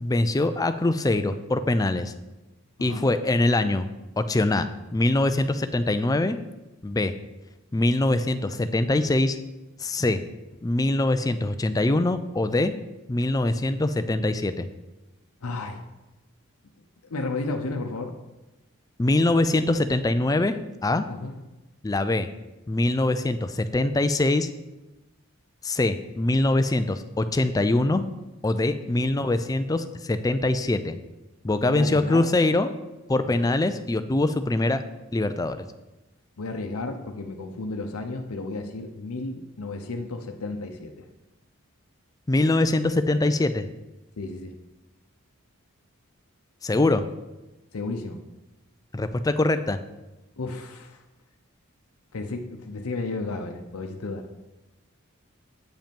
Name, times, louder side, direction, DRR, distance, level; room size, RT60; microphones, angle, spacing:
voice 1, 0.0-2.1 2.8-3.9 4.2-6.4 6.8-7.1 7.7-9.4 9.8-10.2 10.6-12.7 13.1-14.7 19.0-20.6 20.8-21.1 21.8-22.3 22.7-24.5 25.6-28.0 28.4-31.0 31.4-32.7 33.1-34.8 35.1-35.6 42.3-43.7 46.6-47.0 48.9-49.8, left 2 dB, 15° left, 10 dB, 0.4 m, -23 dB
voice 2, 15.4-15.8 17.0-18.1 21.1-21.4 29.0-29.1 31.6-32.3 33.2-33.5 36.4-41.1 44.2-44.6 47.7-48.2 50.4-51.0 52.1-54.3, left 3 dB, 90° left, 4 dB, 0.7 m, -33 dB
8.8 x 5.3 x 5.2 m, 1.1 s
head